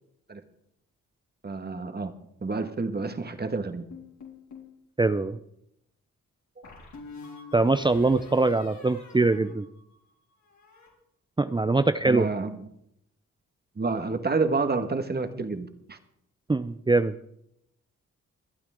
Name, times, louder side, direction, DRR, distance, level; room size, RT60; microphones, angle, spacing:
voice 1, 1.4-2.1 2.4-3.9 12.1-12.6 13.8-16.0, right 3 dB, 30° right, 7 dB, 1.8 m, -29 dB
sound 1, 3.9-4.8 6.6-10.1 10.4-10.9, left 4 dB, 65° left, 4.3 m, -47 dB
voice 2, 5.0-5.4 7.5-9.7 11.4-12.3 16.5-17.1, right 3 dB, 15° right, 11 dB, 0.6 m, -23 dB
24.5 x 8.8 x 3.8 m, 0.75 s
supercardioid pair, 55°, 31 cm